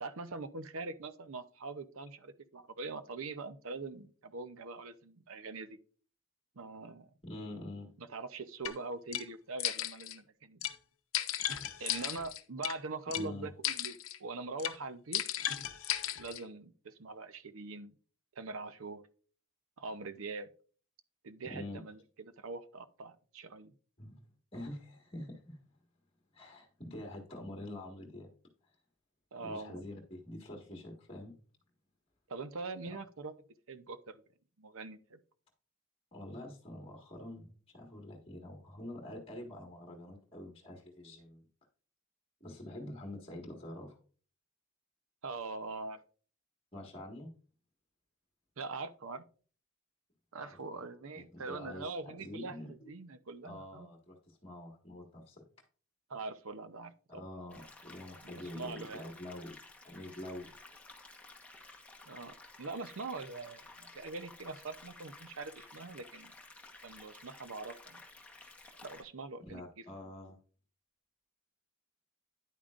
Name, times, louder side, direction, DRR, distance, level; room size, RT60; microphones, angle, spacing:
voice 1, 0.0-5.8 6.6-7.1 8.0-10.7 11.8-15.2 16.2-17.9 18.4-19.0 19.8-20.5 21.2-23.7 29.3-29.8 32.3-33.3 33.7-34.2 34.6-35.2 45.2-46.0 48.6-49.2 50.3-53.9 56.1-57.2 58.5-59.0 62.1-66.3 66.8-68.0 68.8-69.9, right 3 dB, 70° right, 12 dB, 0.7 m, -43 dB
voice 2, 7.2-7.9 13.1-13.5 21.4-21.8 24.0-24.2 24.5-25.6 26.3-28.3 28.6-28.8 29.4-31.4 36.1-41.4 42.4-44.0 46.7-47.3 50.4-50.6 51.1-52.9 53.4-55.4 57.1-59.6 59.8-60.5 69.4-70.4, left 1 dB, 25° left, 0 dB, 1.6 m, -46 dB
sound 1, 8.7-8.8 9.1-9.3 9.6-10.2 10.6-10.8 11.1-12.8 13.1-13.3 13.6-14.2 14.6-14.8 15.1-16.4, left 11 dB, 65° left, 0.7 m, -35 dB
sound 2, 57.5-69.0, left 2 dB, 5° left, 1.1 m, -54 dB
10.0 x 8.7 x 2.5 m, 0.41 s
head